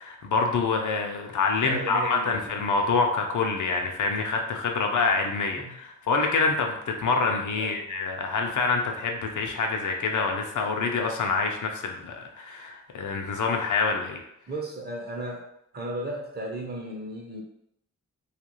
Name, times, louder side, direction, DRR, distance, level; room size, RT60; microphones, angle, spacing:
voice 1, 0.0-14.2, left 4 dB, 70° left, 3 dB, 0.5 m, -26 dB
voice 2, 1.6-2.5 5.6-5.7 7.6-7.8 14.5-15.4 15.7-17.4, right 1 dB, 30° right, -1 dB, 0.6 m, -35 dB
2.4 x 2.2 x 2.9 m, 0.76 s
wide cardioid pair, 120°, 32 cm